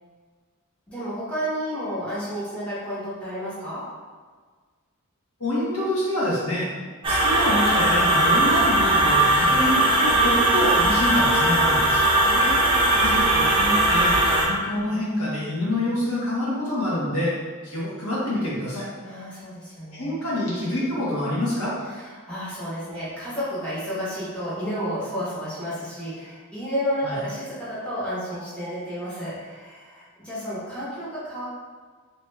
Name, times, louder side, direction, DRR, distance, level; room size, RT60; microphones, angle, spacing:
voice 1, 0.9-3.8 12.2-13.2 19.0-20.2 21.8-31.5, equal, 5° left, -11 dB, 1.0 m, -31 dB
voice 2, 5.4-6.7 7.1-12.0 13.0-17.3 17.6-18.9 19.9-21.7 27.0-27.2, left 1 dB, 75° left, -8 dB, 1.3 m, -26 dB
sound 1, 7.0-14.5, right 1 dB, 25° right, 0.5 m, -19 dB
3.0 x 2.4 x 3.2 m, 1.5 s
head